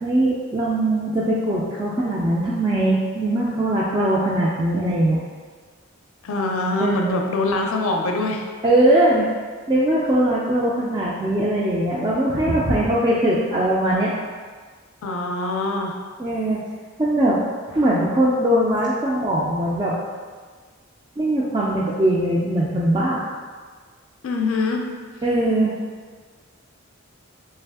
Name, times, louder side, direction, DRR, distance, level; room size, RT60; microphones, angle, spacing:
voice 1, 0.0-5.2 6.8-7.2 8.6-9.3 9.7-14.1 16.2-16.6 17.0-17.4 17.7-19.9 21.2-23.3 25.2-25.7, right 1 dB, 20° right, -5 dB, 0.3 m, -20 dB
voice 2, 6.2-8.5 15.0-16.0 24.2-24.9, left 2 dB, 80° left, 2 dB, 0.4 m, -23 dB
3.3 x 3.1 x 3.4 m, 1.5 s
head